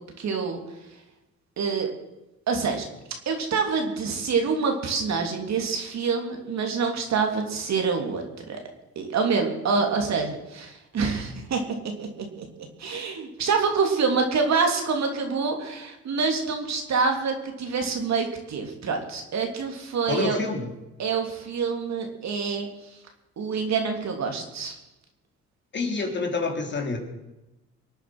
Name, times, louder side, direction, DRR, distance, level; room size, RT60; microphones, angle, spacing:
voice 1, 0.2-0.6 1.6-1.9 2.5-2.9 3.2-8.6 8.9-11.6 12.0-12.1 12.4-12.5 12.8-20.4 21.0-22.7 23.4-24.7, right 5 dB, 65° right, 3 dB, 3.3 m, -26 dB
voice 2, 20.1-20.7 25.7-27.0, left 3 dB, 35° left, 2 dB, 3.3 m, -27 dB
24.5 x 9.1 x 6.2 m, 0.97 s
cardioid pair, 90°, 30 cm